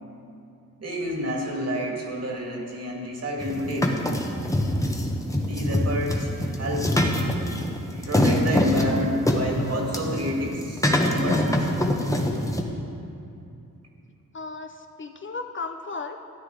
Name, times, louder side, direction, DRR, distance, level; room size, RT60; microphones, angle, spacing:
voice 1, 0.8-4.1 5.5-6.9 7.2-11.7, equal, 45° right, -1 dB, 2.1 m, -30 dB
sound 1, 3.4-12.6, left 1 dB, 10° left, 1.1 m, -24 dB
voice 2, 14.3-16.2, left 4 dB, 35° left, 6 dB, 0.6 m, -35 dB
13.5 x 11.0 x 3.8 m, 2.6 s
wide cardioid pair, 115°, 33 cm